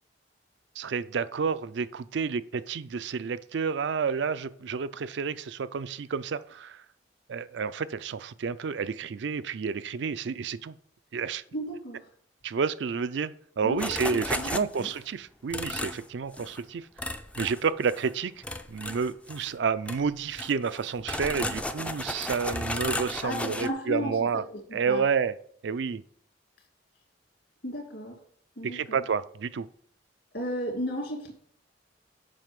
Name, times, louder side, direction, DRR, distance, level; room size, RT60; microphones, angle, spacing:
voice 1, 0.8-6.8 7.3-10.8 11.1-11.4 12.4-16.9 17.4-18.3 18.7-24.4 24.7-25.3 25.6-26.0 28.6-29.7, right 5 dB, 65° right, 0.4 m, -30 dB
voice 2, 11.5-12.0 13.6-14.5 14.8-14.9 23.2-24.4 24.7-25.0 27.6-28.1 28.6-29.0 30.3-31.3, equal, 60° left, 2.6 m, -34 dB
sound 1, 13.8-15.0 15.5-16.0 16.3-16.6 17.0-18.1 18.4-19.5 19.9-20.0 20.3-23.7, left 1 dB, 5° left, 0.4 m, -34 dB
7.6 x 5.7 x 5.2 m
head